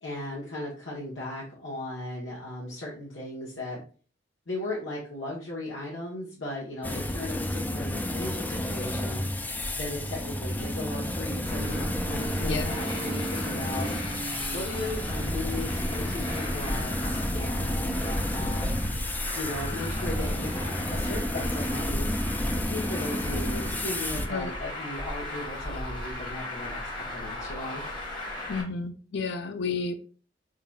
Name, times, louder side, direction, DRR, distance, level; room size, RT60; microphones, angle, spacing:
voice 1, 0.0-3.8 4.5-9.2 9.7-13.9 14.5-18.8 19.3-22.1 22.5-27.8, left 1 dB, 90° left, 1.1 m, -37 dB
sound 1, 6.8-24.3, left 1 dB, 10° left, 0.3 m, -32 dB
Traffic noise roadway noise, 11.4-28.6, equal, 25° left, 1.3 m, -34 dB
voice 2, 12.3-12.7 24.3-24.5 28.5-29.9, left 4 dB, 65° left, 0.5 m, -31 dB
4.2 x 3.8 x 2.3 m
head